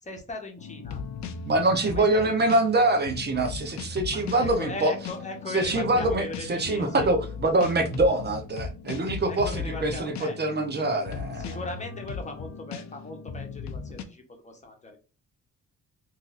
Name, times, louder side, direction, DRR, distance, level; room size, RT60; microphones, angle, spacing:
voice 1, 0.0-1.0 1.9-2.5 4.1-7.1 9.3-10.4 11.4-15.0, left 2 dB, 25° left, 1.2 m, -39 dB
sound 1, 0.6-14.0, left 5 dB, 65° left, 0.6 m, -37 dB
voice 2, 1.5-4.9 5.5-11.6, right 2 dB, 35° right, 0.9 m, -24 dB
3.7 x 2.8 x 2.6 m
cardioid pair, 90°, 30 cm